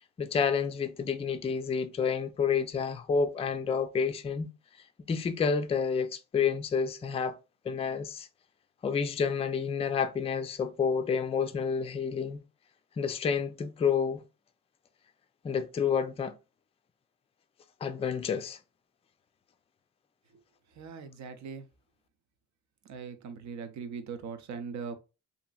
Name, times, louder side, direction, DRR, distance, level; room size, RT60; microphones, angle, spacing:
voice 1, 0.2-4.5 5.1-7.4 7.6-8.3 8.8-12.4 13.0-14.2 15.4-16.3 17.8-18.6, left 6 dB, 20° left, 0.3 m, -29 dB
voice 2, 20.8-21.6 22.9-25.0, right 5 dB, 65° right, 0.7 m, -40 dB
2.8 x 2.6 x 2.3 m
cardioid pair, 90°, 30 cm